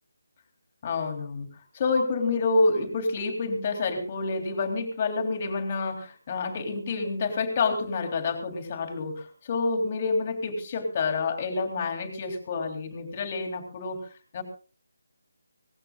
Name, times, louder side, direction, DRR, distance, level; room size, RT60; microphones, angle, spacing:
voice 1, 0.8-14.1 14.3-14.4, left 3 dB, 30° left, 5 dB, 3.4 m, -28 dB
23.5 x 18.5 x 2.5 m, 0.35 s
figure-of-eight pair, 155°, 0 cm